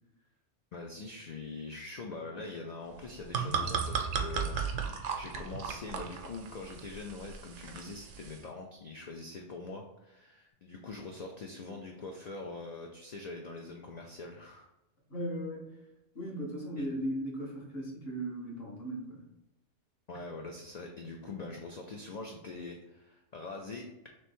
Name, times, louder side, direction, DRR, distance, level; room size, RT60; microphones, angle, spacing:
voice 1, 0.7-4.9 5.1-14.7 16.8-16.9 20.1-23.9, left 3 dB, 75° left, 1 dB, 0.3 m, -43 dB
sound 1, 3.0-8.4, right 6 dB, 85° right, 1.0 m, -36 dB
voice 2, 15.1-15.8 16.1-19.3, right 1 dB, 50° left, -2 dB, 1.2 m, -37 dB
3.2 x 3.1 x 4.3 m, 0.91 s
omnidirectional pair, 1.3 m